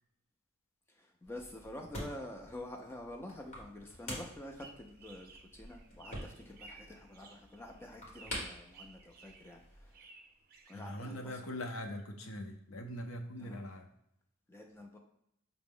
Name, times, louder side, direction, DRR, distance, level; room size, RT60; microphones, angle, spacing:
voice 1, 1.0-10.0 10.7-11.6 13.4-13.6 14.5-15.0, left 1 dB, 10° left, 1 dB, 0.3 m, -48 dB
sound 1, 1.2-9.9, equal, 35° left, 1.3 m, -48 dB
sound 2, 4.3-11.4, right 3 dB, 45° right, 0.5 m, -57 dB
voice 2, 10.7-13.9, left 1 dB, 75° left, 4 dB, 0.6 m, -42 dB
5.7 x 2.0 x 3.6 m, 0.76 s
head